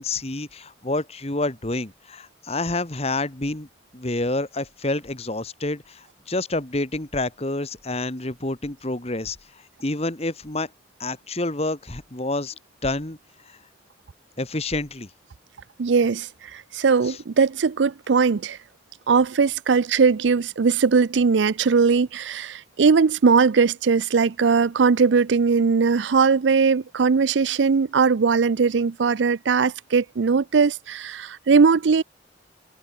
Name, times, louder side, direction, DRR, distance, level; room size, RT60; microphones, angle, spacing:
voice 1, 0.0-3.7 3.9-9.4 9.8-10.7 11.0-12.5 12.8-13.2 13.4-13.6 14.4-15.1 17.0-17.2, left 2 dB, 35° left, 1.7 m, -28 dB
voice 2, 15.8-18.6 19.1-32.0, right 5 dB, 90° right, 0.5 m, -20 dB
head